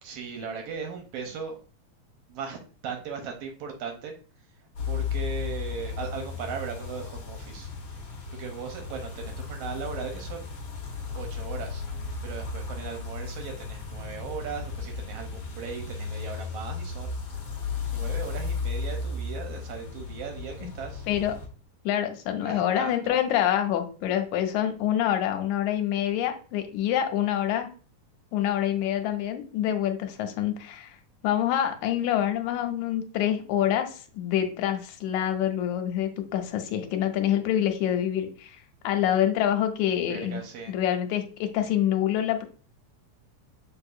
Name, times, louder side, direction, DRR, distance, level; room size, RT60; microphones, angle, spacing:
voice 1, 0.0-1.6 2.3-4.1 4.8-7.7 8.3-10.5 11.1-11.8 12.2-17.5 17.9-21.1 22.4-23.1 40.1-40.7, right 6 dB, 75° right, 4 dB, 1.5 m, -38 dB
sound 1, 4.7-21.5, left 5 dB, 60° left, 1.3 m, -35 dB
voice 2, 21.9-27.7 28.3-31.0 31.2-38.6 38.8-40.4 40.7-42.5, left 11 dB, 80° left, 6 dB, 1.9 m, -26 dB
6.3 x 2.8 x 2.3 m, 0.39 s
omnidirectional pair, 3.4 m